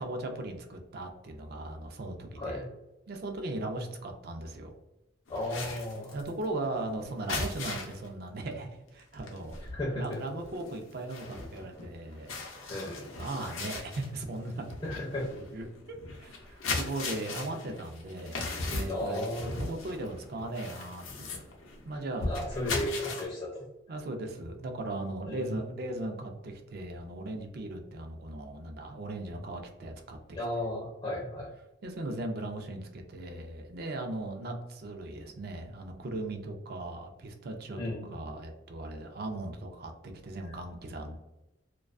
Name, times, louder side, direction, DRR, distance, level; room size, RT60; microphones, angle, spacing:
voice 1, 0.0-2.7 3.1-4.7 6.1-12.7 13.2-14.7 15.5-15.6 16.2-19.3 19.6-21.4 21.8-22.5 23.9-30.4 31.8-41.2, right 2 dB, 50° right, 3 dB, 0.4 m, -38 dB
voice 2, 2.4-2.7 5.3-6.1 9.7-10.2 12.7-13.1 14.8-15.3 18.8-19.7 22.3-23.7 25.3-25.8 30.3-31.5 37.8-38.1, left 1 dB, 25° left, -4 dB, 0.4 m, -34 dB
sound 1, 5.3-8.1 8.5-8.7 9.0-23.3, left 3 dB, 90° left, 0.6 m, -38 dB
2.3 x 2.3 x 2.4 m, 0.98 s
head